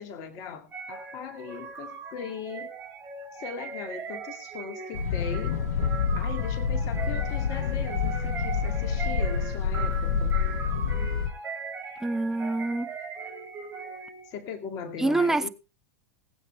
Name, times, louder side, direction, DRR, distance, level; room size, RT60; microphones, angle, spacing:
voice 1, 0.0-2.7 3.3-5.6 6.2-10.4 14.2-15.5, left 6 dB, 45° left, 2.2 m, -39 dB
sound 1, 0.7-14.4, right 5 dB, 25° right, 4.6 m, -39 dB
sound 2, 4.9-11.3, left 6 dB, 65° left, 1.8 m, -27 dB
voice 2, 12.0-12.9 15.0-15.5, right 2 dB, 5° right, 0.8 m, -26 dB
20.5 x 8.2 x 3.2 m
hypercardioid pair, 95°, 9 cm